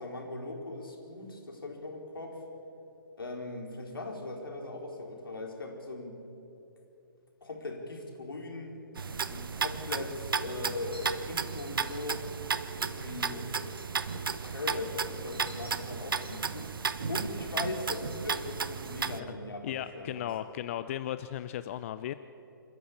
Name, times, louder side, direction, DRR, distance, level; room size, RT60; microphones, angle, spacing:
voice 1, 0.0-2.4 3.2-6.2 7.4-8.7 9.3-12.3 12.8-13.7 14.1-16.7 17.1-20.3, left 2 dB, 75° left, 1 dB, 4.6 m, -39 dB
sound 1, 9.0-19.2, right 5 dB, 70° right, 1.0 m, -34 dB
sound 2, 10.8-14.6 15.0-17.1 17.5-19.3, right 1 dB, 85° right, 4.2 m, -54 dB
voice 2, 19.6-22.1, left 11 dB, 35° left, 12 dB, 0.6 m, -36 dB
27.0 x 14.0 x 8.7 m, 2.8 s
figure-of-eight pair, 135°, 12 cm